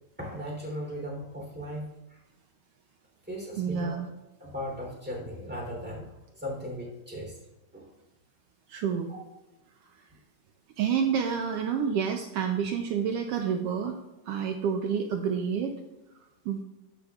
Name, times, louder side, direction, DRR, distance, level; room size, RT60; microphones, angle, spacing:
voice 1, 0.2-2.2 3.3-3.9 4.4-6.1 6.3-7.3 7.7-7.9, equal, 5° right, -3 dB, 2.9 m, -37 dB
voice 2, 3.6-4.1 8.7-9.1 9.8-9.9 10.8-14.0 14.3-15.8 16.1-16.6, right 7 dB, 85° right, 4 dB, 1.3 m, -29 dB
13.0 x 7.9 x 2.4 m, 1.0 s
omnidirectional pair, 3.4 m